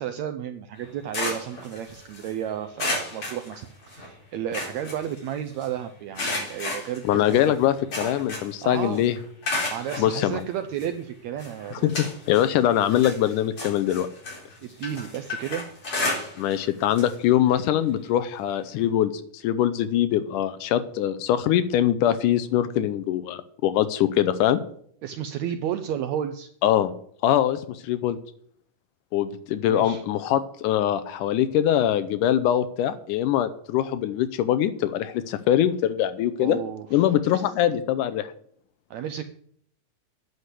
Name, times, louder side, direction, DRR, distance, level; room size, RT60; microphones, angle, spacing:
voice 1, 0.0-7.4 8.6-9.0 9.7-12.1 14.6-15.7 25.0-26.5 29.7-30.0 36.4-37.4 38.9-39.2, right 10 dB, 85° right, 9 dB, 1.6 m, -32 dB
sound 1, 0.7-2.3 2.8-4.1 4.3-5.7 6.1-8.6 8.9-10.1 10.8-10.9 11.4-12.5 12.8-16.6 16.9-17.1 17.5-17.6 18.8-18.9, left 2 dB, 40° left, 5.0 m, -32 dB
voice 2, 7.0-9.2 10.0-10.4 11.7-14.1 16.4-24.6 26.6-26.9 27.2-28.2 29.1-36.6 36.9-38.3, left 11 dB, 80° left, 12 dB, 2.1 m, -23 dB
9.6 x 6.5 x 8.1 m, 0.64 s
omnidirectional pair, 3.8 m